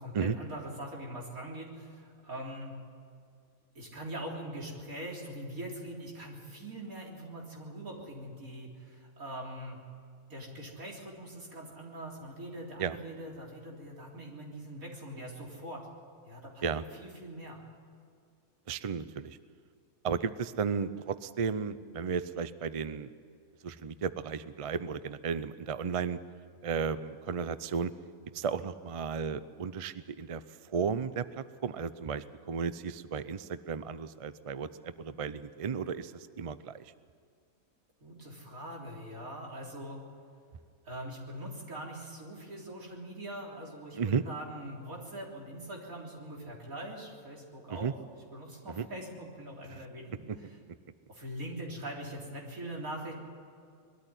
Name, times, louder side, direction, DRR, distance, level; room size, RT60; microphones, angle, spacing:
voice 1, 0.0-2.8 3.7-9.8 10.3-15.8 16.2-16.6 17.0-17.6 38.0-40.0 40.8-44.0 44.3-47.9 48.3-50.6 51.1-53.1, right 1 dB, 75° right, -2 dB, 4.1 m, -42 dB
voice 2, 18.7-19.4 20.0-23.1 23.6-26.2 26.6-27.9 28.3-30.4 30.7-36.8 43.9-44.2 47.7-47.9 48.8-48.9, right 6 dB, 50° right, 13 dB, 0.4 m, -34 dB
21.0 x 13.0 x 10.0 m, 2.2 s
omnidirectional pair, 1.5 m